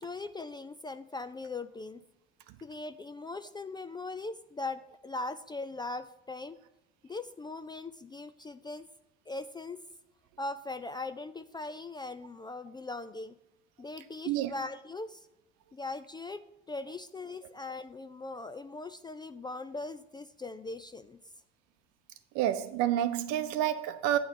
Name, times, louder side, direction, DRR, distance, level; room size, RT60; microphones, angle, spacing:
voice 1, 0.0-2.0 2.6-6.6 7.1-8.9 9.3-9.8 10.4-13.4 13.8-15.3 15.7-21.2, left 3 dB, 15° left, 0.4 m, -40 dB
voice 2, 22.3-24.2, right 12 dB, 60° right, 0.8 m, -29 dB
9.1 x 4.4 x 7.1 m
figure-of-eight pair, 60°, 33 cm